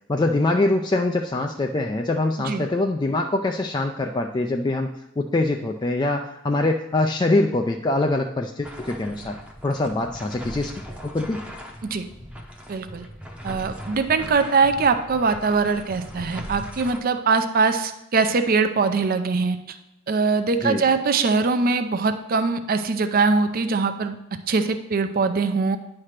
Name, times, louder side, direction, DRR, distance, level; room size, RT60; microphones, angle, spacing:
voice 1, 0.1-4.9 5.2-9.4 9.6-10.7 11.0-11.4 20.6-20.9, left 2 dB, 20° left, 3 dB, 0.3 m, -23 dB
sound 1, 8.6-17.0, equal, 5° right, 0.7 m, -39 dB
voice 2, 12.7-13.0 13.4-19.8 20.1-25.8, right 4 dB, 45° right, 9 dB, 0.5 m, -22 dB
9.8 x 3.3 x 5.8 m, 0.93 s
head